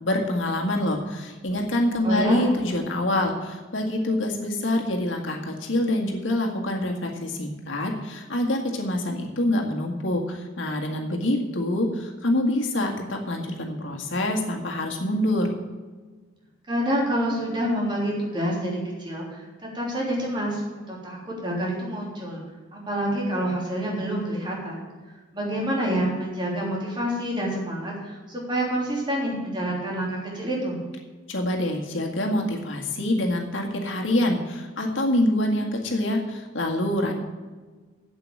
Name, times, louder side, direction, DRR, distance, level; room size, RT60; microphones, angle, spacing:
voice 1, 0.0-15.5 31.3-37.1, left 1 dB, 75° left, 1 dB, 1.9 m, -26 dB
voice 2, 2.0-2.4 16.7-19.4 19.7-20.6 20.9-22.4 22.7-24.8 25.3-30.8, equal, 25° right, -3 dB, 3.3 m, -27 dB
8.2 x 7.8 x 8.7 m, 1.4 s
head